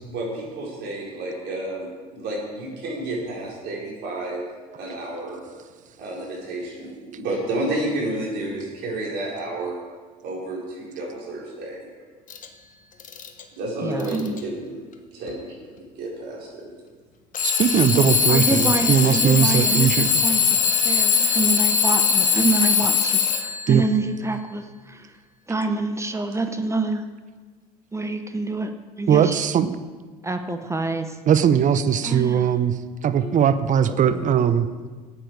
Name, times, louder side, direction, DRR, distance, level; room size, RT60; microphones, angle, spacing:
voice 1, 0.1-4.4 4.8-5.4 6.0-9.8 10.2-11.9 13.6-14.8 15.1-15.5 16.0-16.7 33.1-33.2 34.0-34.2, right 1 dB, 55° right, -3 dB, 4.5 m, -31 dB
Alarm / Clock, 12.3-12.5 13.0-13.4 14.0-14.4 15.3-15.4 17.3-23.7, left 7 dB, 40° left, 1.3 m, -21 dB
voice 2, 13.8-14.4 17.9-25.1 25.5-27.0 27.9-29.4 30.2-31.2 32.0-32.5, right 3 dB, 15° right, 7 dB, 0.9 m, -27 dB
voice 3, 17.4-20.1 23.7-23.8 29.1-29.8 31.3-32.7 33.0-34.7, right 8 dB, 40° right, 12 dB, 0.8 m, -19 dB
14.5 x 8.8 x 4.9 m, 1.4 s
hypercardioid pair, 70°, 20 cm